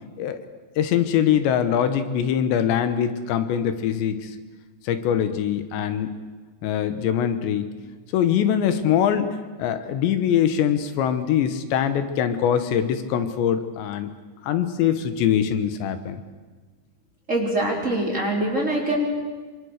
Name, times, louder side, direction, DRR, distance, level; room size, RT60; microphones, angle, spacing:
voice 1, 0.8-4.3 4.9-6.1 6.6-7.7 8.1-14.1 14.4-16.2, left 9 dB, 80° left, 10 dB, 3.5 m, -23 dB
voice 2, 17.3-19.1, right 1 dB, 15° right, -2 dB, 4.0 m, -23 dB
25.5 x 25.5 x 6.6 m, 1.4 s
omnidirectional pair, 5.0 m